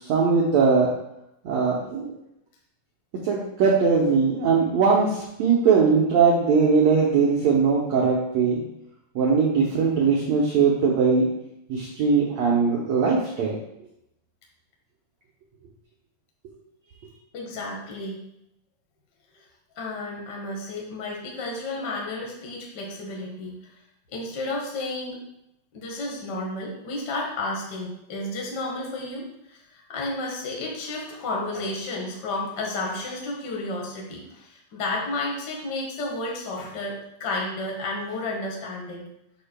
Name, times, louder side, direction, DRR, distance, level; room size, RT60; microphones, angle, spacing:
voice 1, 0.0-0.9 1.4-2.2 3.2-8.6 9.1-11.3 11.7-13.5, right 5 dB, 85° right, -3 dB, 1.5 m, -20 dB
voice 2, 17.3-18.2 19.3-19.4 19.7-23.7 24.1-25.2 25.7-39.0, left 2 dB, 70° left, -2 dB, 0.9 m, -32 dB
8.3 x 6.6 x 2.2 m, 0.82 s
omnidirectional pair, 4.3 m